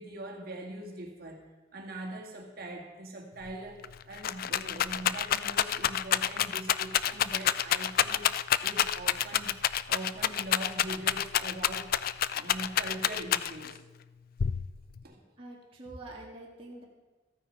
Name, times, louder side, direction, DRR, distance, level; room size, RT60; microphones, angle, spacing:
voice 1, 0.0-1.4 1.7-9.6 9.9-11.9 12.3-13.8 15.0-15.2, right 1 dB, 55° right, 1 dB, 2.1 m, -42 dB
Rattle, 3.5-3.6 3.8-13.8 14.4-15.0, left 10 dB, 50° left, 0.4 m, -28 dB
voice 2, 15.4-16.8, right 2 dB, 30° right, -3 dB, 1.8 m, -45 dB
14.0 x 9.1 x 5.4 m, 1.3 s
head